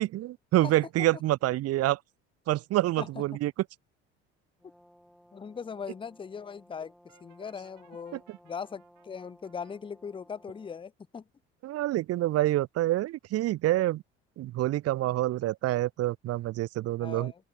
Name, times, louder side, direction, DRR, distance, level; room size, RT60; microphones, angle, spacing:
voice 1, 0.0-2.0 2.5-3.5 8.1-8.4 11.6-14.0 14.4-17.3, right 15 dB, 50° right, 0.6 m, -27 dB
Brass instrument, 4.6-10.8, equal, ahead, 7.6 m, -59 dB
voice 2, 5.3-6.9 7.2-11.2 17.0-17.3, left 6 dB, 15° left, 0.5 m, -40 dB
Brass instrument 2, 7.1-9.8, right 16 dB, 65° right, 5.6 m, -65 dB
open air
hypercardioid pair, 60°, 33 cm